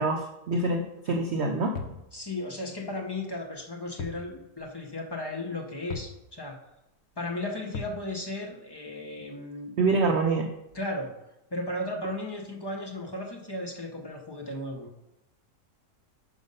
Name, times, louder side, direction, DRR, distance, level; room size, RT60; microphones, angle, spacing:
voice 1, 0.0-2.0 9.8-10.5, right 3 dB, 70° right, 4 dB, 0.6 m, -26 dB
sound 1, 1.7-2.1 4.0-4.3 4.6-4.7 5.9-6.2 7.7-8.0, left 5 dB, 55° left, 0.8 m, -37 dB
voice 2, 2.1-6.6 7.2-9.7 10.7-11.1 11.5-14.9, left 1 dB, 35° left, 1 dB, 0.4 m, -35 dB
5.8 x 5.3 x 5.3 m, 0.91 s
omnidirectional pair, 1.8 m